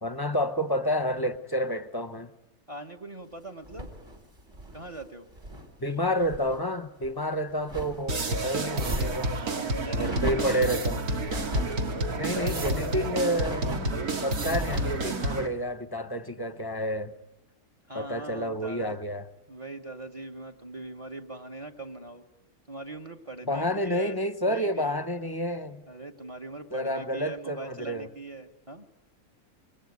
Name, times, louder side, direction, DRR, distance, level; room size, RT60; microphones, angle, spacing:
voice 1, 0.0-2.3 5.8-9.4 9.9-11.0 12.2-13.8 14.2-17.1 17.9-19.2 23.5-25.8 26.7-28.1, equal, 20° left, 0.8 m, -29 dB
voice 2, 2.7-3.9 4.7-5.3 9.3-10.9 12.1-13.1 13.9-14.1 17.9-19.0 19.5-22.2 22.7-24.2 24.4-25.0 25.9-28.9, right 2 dB, 25° right, 1.2 m, -41 dB
sound 1, 3.6-5.7 6.0-6.6 7.0-8.3 8.7-9.4 10.0-10.7 11.2-11.8 12.3-12.9 13.3-14.0 14.4-15.0, equal, 55° right, 3.7 m, -37 dB
sound 2, 8.1-15.5, right 2 dB, 80° right, 2.2 m, -30 dB
26.0 x 22.0 x 9.5 m
omnidirectional pair, 1.5 m